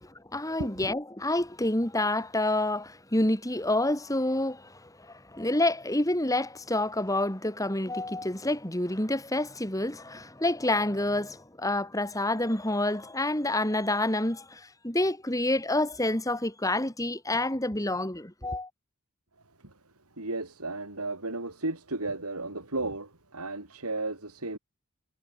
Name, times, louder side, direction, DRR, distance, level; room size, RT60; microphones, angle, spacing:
voice 1, 0.0-18.7, left 1 dB, 15° left, 2.8 m, -28 dB
voice 2, 20.2-24.6, right 2 dB, 85° right, 5.7 m, -34 dB
head